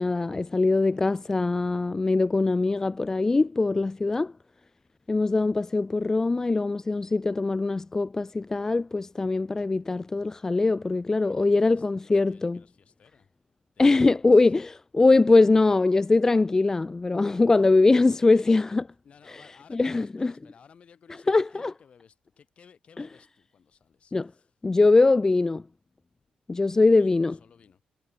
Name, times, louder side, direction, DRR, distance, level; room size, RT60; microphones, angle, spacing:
voice 1, 0.0-4.3 5.1-12.6 13.8-18.8 19.7-20.3 21.3-21.7 24.1-24.3 24.6-25.6 26.5-27.3, left 3 dB, 20° left, 0.3 m, -22 dB
voice 2, 11.2-13.3 13.7-14.5 18.2-24.5 26.9-27.8, left 7 dB, 50° left, 5.8 m, -57 dB
cardioid pair, 95°, 3 cm